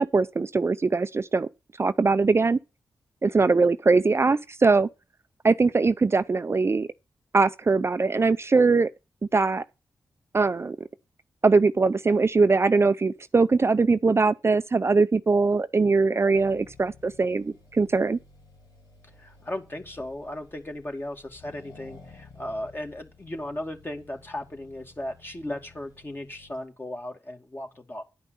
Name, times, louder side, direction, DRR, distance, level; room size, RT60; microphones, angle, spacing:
voice 1, 0.0-1.5 1.8-2.6 3.2-4.9 5.4-6.9 7.3-8.9 9.3-9.6 10.3-10.9 11.4-18.2, right 4 dB, 35° right, 0.5 m, -21 dB
Accelerating revving vroom, 16.3-26.7, left 4 dB, 85° left, 2.7 m, -53 dB
voice 2, 19.2-28.0, left 1 dB, 30° left, 2.4 m, -36 dB
10.5 x 5.4 x 6.8 m
cardioid pair, 45°, 7 cm